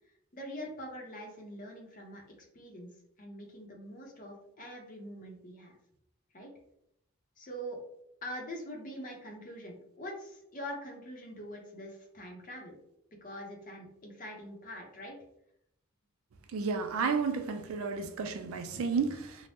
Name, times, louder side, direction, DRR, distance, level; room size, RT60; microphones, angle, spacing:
voice 1, 0.3-2.2 2.5-2.9 3.2-5.7 6.3-6.5 7.4-7.8 8.2-12.8 13.2-15.2, equal, 40° left, 0.7 m, -44 dB
voice 2, 16.5-19.4, right 5 dB, 70° right, 0.4 m, -32 dB
2.7 x 2.1 x 3.3 m
head